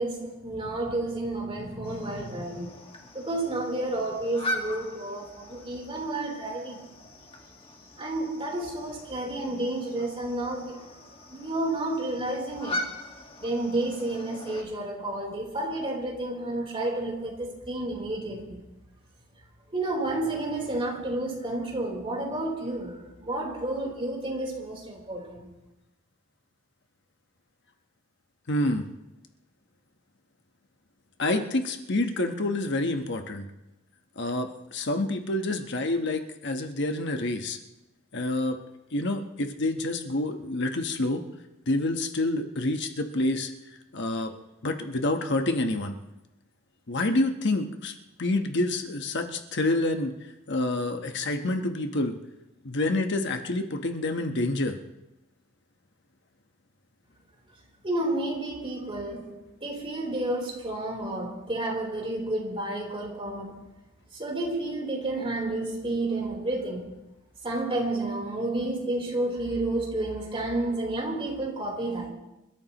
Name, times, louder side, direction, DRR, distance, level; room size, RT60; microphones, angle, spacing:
voice 1, 0.0-2.8 3.1-6.8 8.0-11.0 11.3-12.9 13.4-18.6 19.7-25.5 57.8-63.6 64.1-66.9 67.4-72.1, right 2 dB, 25° right, -1 dB, 3.7 m, -31 dB
sound 1, 1.8-14.6, left 1 dB, 25° left, 1.8 m, -40 dB
voice 2, 28.5-28.8 31.2-33.5 34.2-37.6 38.1-38.6 38.9-41.2 41.7-44.3 44.6-46.0 46.9-50.1 50.5-52.2 52.6-54.8, left 2 dB, 60° left, 5 dB, 1.1 m, -28 dB
27.5 x 13.5 x 3.0 m, 0.96 s
head